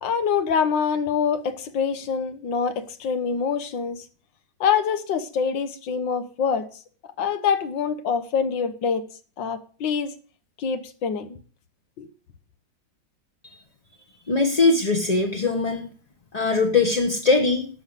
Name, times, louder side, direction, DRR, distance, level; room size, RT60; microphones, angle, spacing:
voice 1, 0.0-2.7 3.0-4.0 4.6-6.7 7.2-9.0 9.4-10.1 10.6-11.4 12.0-12.1, left 6 dB, 85° left, 1.8 m, -25 dB
voice 2, 14.3-15.9 16.3-17.7, left 3 dB, 25° left, 0.9 m, -21 dB
12.0 x 5.9 x 8.1 m
omnidirectional pair, 2.0 m